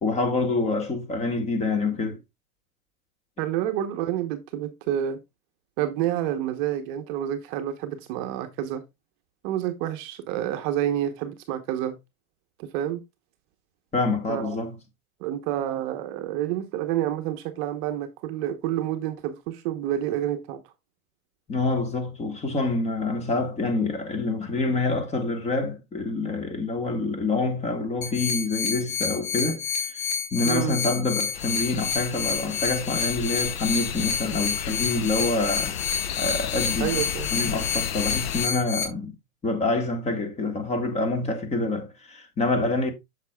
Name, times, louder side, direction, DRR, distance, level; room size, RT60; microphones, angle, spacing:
voice 1, 0.0-2.2 13.9-14.8 21.5-30.0 30.3-35.8 36.2-37.0 37.3-39.1 39.4-42.9, left 3 dB, 15° left, 1.4 m, -26 dB
voice 2, 3.4-5.2 5.8-8.8 9.4-12.0 12.6-13.0 14.3-14.6 15.2-20.6 30.4-30.8 36.8-37.3, right 11 dB, 35° right, 0.9 m, -28 dB
sound 1, 28.0-38.8, left 6 dB, 70° left, 2.2 m, -29 dB
sound 2, 31.3-38.5, left 10 dB, 45° left, 0.7 m, -33 dB
8.0 x 6.7 x 2.3 m
hypercardioid pair, 130°, 43 cm